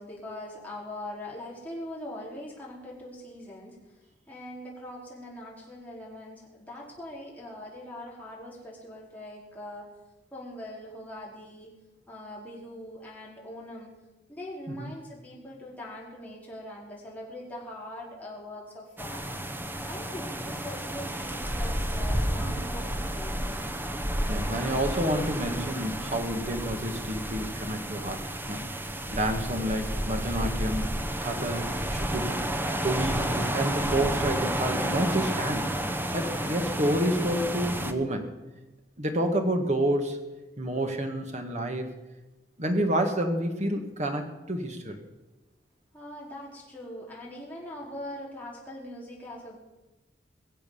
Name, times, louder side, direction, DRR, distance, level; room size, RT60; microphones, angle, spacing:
voice 1, 0.0-3.8 4.3-9.9 10.3-11.7 12.1-13.9 14.3-19.4 19.8-23.6 45.9-49.6, left 1 dB, 10° left, -5 dB, 4.6 m, -42 dB
sound 1, 19.0-37.9, right 1 dB, 10° right, 1.1 m, -31 dB
voice 2, 24.3-28.7 29.1-30.9 31.2-31.6 31.9-32.4 32.8-35.7 36.1-38.3 39.0-40.2 40.6-41.9 42.6-45.0, right 1 dB, 40° right, 5 dB, 2.1 m, -29 dB
22.0 x 7.7 x 7.2 m, 1.1 s
head